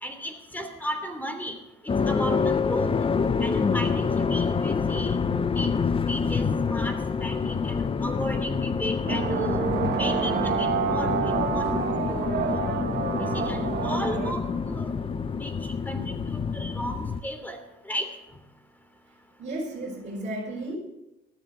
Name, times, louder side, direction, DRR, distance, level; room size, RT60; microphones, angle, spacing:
voice 1, 0.0-1.6 2.1-2.9 3.4-5.7 6.1-9.6 9.9-12.6 13.2-14.9 15.4-15.5 15.9-17.6 17.8-18.1, equal, 10° left, 7 dB, 3.1 m, -35 dB
sound 1, 1.9-17.2, left 5 dB, 30° left, 0.8 m, -27 dB
sound 2, 9.1-14.3, right 6 dB, 60° right, 1.8 m, -28 dB
voice 2, 19.4-20.8, right 1 dB, 40° right, -5 dB, 5.5 m, -33 dB
19.0 x 13.5 x 4.0 m, 0.90 s
cardioid pair, 90°, 19 cm